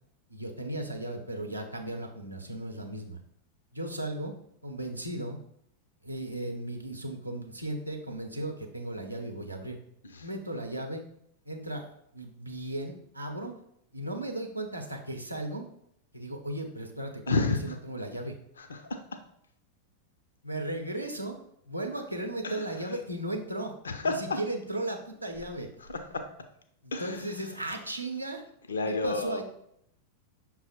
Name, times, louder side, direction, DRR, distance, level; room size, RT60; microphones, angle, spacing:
voice 1, 0.3-3.2 3.7-4.4 4.6-5.4 6.0-9.8 10.2-11.0 11.5-13.5 13.9-15.7 16.1-18.3 20.4-21.4 21.7-23.7 24.0-25.7 26.8-28.4 28.9-29.4, right 1 dB, 85° right, 3 dB, 0.6 m, -36 dB
voice 2, 17.3-17.8 18.6-19.2 22.4-22.7 23.8-24.4 25.9-26.2 26.9-27.3 28.7-29.4, left 3 dB, 70° left, 6 dB, 0.4 m, -31 dB
5.8 x 2.0 x 4.3 m, 0.72 s
figure-of-eight pair, 90°, 0 cm